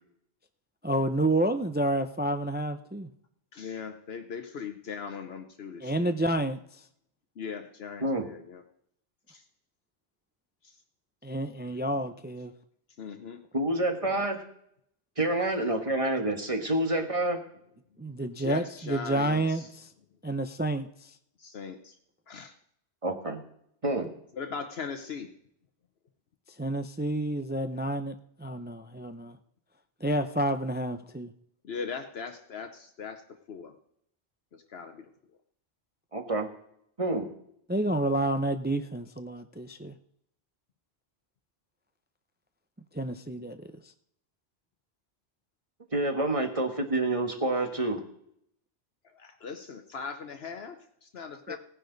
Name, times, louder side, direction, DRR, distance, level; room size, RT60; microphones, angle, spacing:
voice 1, 0.8-3.1 5.8-6.6 11.2-12.5 18.0-19.6 20.2-20.9 26.6-29.4 30.0-31.3 37.7-39.9 42.9-43.6 51.5-51.6, right 1 dB, 15° right, 9 dB, 0.4 m, -29 dB
voice 2, 3.5-6.1 7.4-8.6 9.3-9.4 10.6-10.8 13.0-13.4 18.3-19.7 21.4-21.9 22.3-22.5 24.3-25.3 31.6-33.7 34.5-35.1 49.0-51.6, left 5 dB, 70° left, 6 dB, 1.1 m, -39 dB
voice 3, 13.5-14.4 15.2-17.4 23.0-23.4 23.8-24.1 36.1-36.5 37.0-37.3 43.1-43.2 45.9-48.0, right 2 dB, 30° right, 4 dB, 1.6 m, -28 dB
17.5 x 10.0 x 4.0 m, 0.71 s
omnidirectional pair, 1.1 m